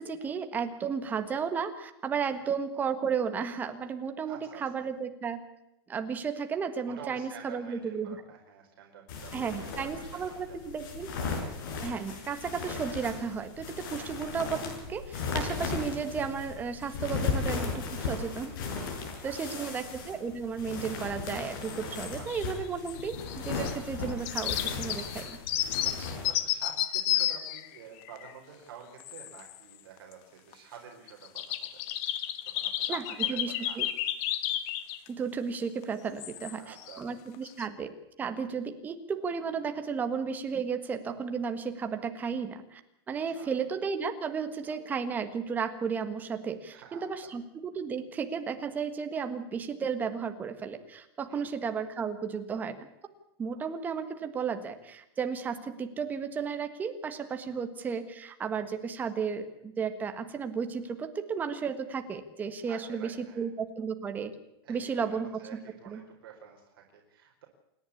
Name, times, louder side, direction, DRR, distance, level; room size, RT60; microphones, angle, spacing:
voice 1, 0.0-5.4 5.9-8.2 9.3-11.1 11.8-18.5 19.2-25.4 32.9-33.9 35.1-37.9 38.2-42.8 43.1-52.9 53.4-64.3 64.7-66.0, right 6 dB, 15° right, 8 dB, 1.5 m, -34 dB
voice 2, 4.2-4.6 6.8-10.6 11.7-11.8 14.0-14.1 19.0-19.7 22.1-22.3 25.2-25.4 25.8-31.9 32.4-33.8 36.3-37.0 43.2-43.5 46.7-47.1 51.3-51.5 57.4-57.5 62.7-63.4 64.6-67.4, right 7 dB, 60° right, 1 dB, 4.7 m, -49 dB
sound 1, 9.1-26.3, left 4 dB, 55° left, 6.5 m, -36 dB
sound 2, 21.6-22.6 22.9-23.7 24.1-28.3 29.0-29.6 30.0-30.1 30.5-30.6 31.1-35.1 35.8-35.9 36.2-37.0 37.3-37.6, left 12 dB, 35° left, 1.3 m, -32 dB
28.0 x 11.0 x 8.5 m, 0.86 s
supercardioid pair, 175°, 13 cm